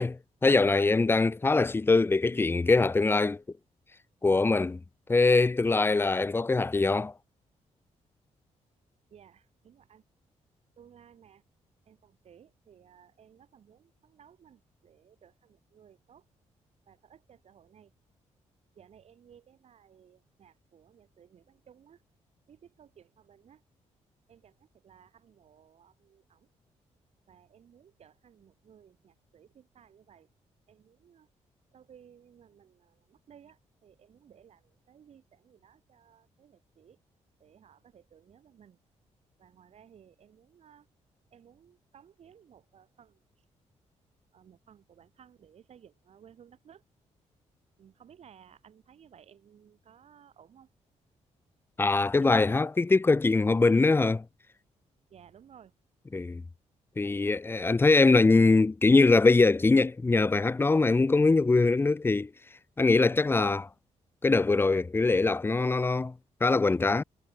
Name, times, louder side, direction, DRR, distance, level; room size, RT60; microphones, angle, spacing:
voice 1, 0.0-3.4 4.2-4.8 5.1-7.1 51.8-54.2 56.1-56.4 57.0-62.3 62.8-63.7 64.2-66.1 66.4-67.0, left 3 dB, 20° left, 0.7 m, -23 dB
voice 2, 9.1-10.0 10.8-11.4 11.9-16.3 16.9-17.9 18.7-22.0 22.5-23.6 24.3-26.5 27.3-30.3 30.7-31.3 31.7-37.0 37.4-38.8 39.4-40.9 41.3-43.2 44.3-46.8 47.8-50.7 52.2-52.7 55.1-55.7, right 8 dB, 60° right, 2.9 m, -58 dB
cardioid pair, 110°, 12 cm